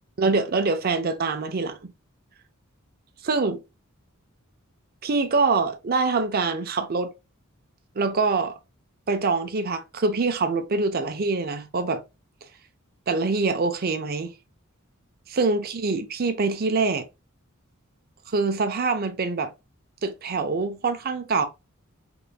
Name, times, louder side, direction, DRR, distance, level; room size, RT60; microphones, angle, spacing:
voice 1, 0.2-1.8 3.2-3.6 5.0-7.1 8.0-8.5 9.1-12.0 13.1-14.3 15.3-17.1 18.3-19.5 20.0-21.5, right 4 dB, 45° right, 0.6 m, -24 dB
3.9 x 3.6 x 2.4 m
head